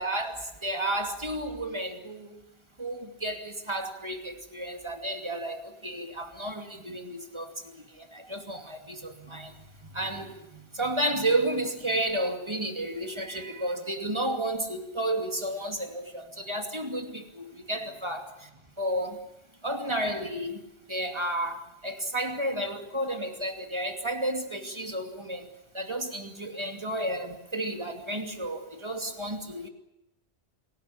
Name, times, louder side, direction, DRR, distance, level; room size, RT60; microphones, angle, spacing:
voice 1, 0.0-2.3 2.8-7.5 8.1-9.5 9.9-18.3 18.8-19.2 19.6-20.6 20.9-25.5 25.7-29.7, right 1 dB, 25° right, 2.7 m, -32 dB
26.5 x 18.0 x 9.8 m
omnidirectional pair, 1.1 m